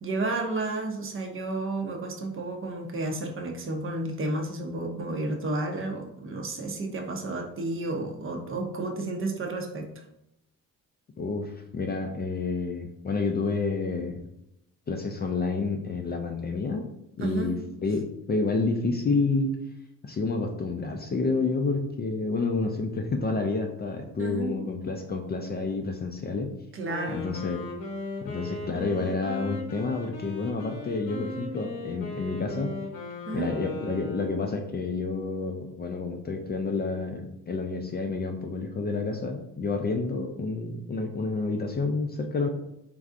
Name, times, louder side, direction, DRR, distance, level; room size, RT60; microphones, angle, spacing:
voice 1, 0.0-9.9 17.2-17.5 24.2-24.5 26.7-27.2 33.3-33.5, right 2 dB, 35° right, 3 dB, 0.6 m, -31 dB
voice 2, 11.2-14.2 14.9-16.8 17.2-19.5 20.0-26.5 27.1-27.6 28.2-32.7 33.3-42.5, left 3 dB, 30° left, 3 dB, 0.4 m, -29 dB
Wind instrument woodwind instrument, 26.8-34.7, left 2 dB, 80° left, 1.0 m, -38 dB
3.3 x 2.5 x 2.5 m, 0.82 s
supercardioid pair, 75°, 36 cm